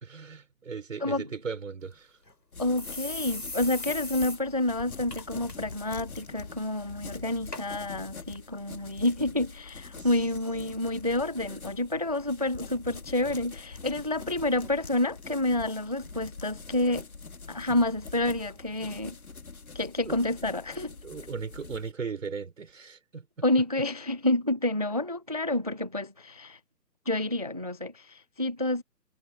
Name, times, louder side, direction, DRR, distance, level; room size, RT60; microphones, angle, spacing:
voice 1, 0.0-2.2 10.0-10.1 17.7-17.8 20.0-20.2 21.0-23.3, right 5 dB, 50° right, 4.5 m, -37 dB
sound 1, 1.8-1.9 2.3-2.4 2.8-4.4 4.7-4.8 5.1-5.5 5.9-6.2 6.9-7.0 7.5-7.6 8.4-8.5, left 2 dB, 70° left, 6.5 m, -38 dB
sound 2, 2.5-21.9, left 4 dB, 55° left, 3.8 m, -44 dB
voice 2, 2.6-17.1 17.5-19.2 19.7-20.9 23.4-26.6 27.1-28.8, left 1 dB, 25° right, 0.6 m, -29 dB
figure-of-eight pair, 145°, 50 cm